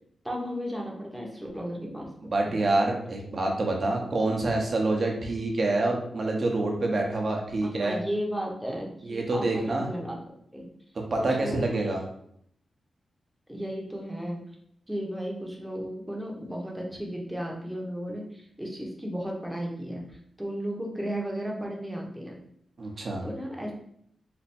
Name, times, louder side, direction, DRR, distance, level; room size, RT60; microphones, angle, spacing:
voice 1, 0.2-2.1 2.4-2.6 7.8-10.2 10.5-10.7 11.2-11.8 13.5-14.4 14.9-22.4 23.2-23.7, equal, 5° right, -1 dB, 0.9 m, -34 dB
voice 2, 2.3-8.0 9.0-9.9 11.1-12.0 22.8-23.2, right 2 dB, 50° right, 0 dB, 0.9 m, -27 dB
3.4 x 2.2 x 4.2 m, 0.71 s
cardioid pair, 85°, 0 cm